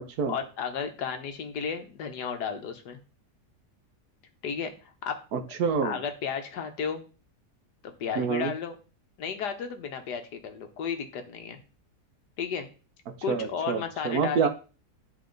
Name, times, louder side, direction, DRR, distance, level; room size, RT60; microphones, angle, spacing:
voice 1, 0.3-3.0 4.4-5.2 5.8-7.0 7.8-8.8 9.2-11.6 12.4-12.7 13.2-14.5, left 6 dB, 90° left, 6 dB, 1.7 m, -33 dB
voice 2, 5.3-6.0 8.2-8.5 13.3-14.5, right 6 dB, 70° right, 7 dB, 1.4 m, -27 dB
10.5 x 4.2 x 3.9 m, 0.35 s
omnidirectional pair, 1.7 m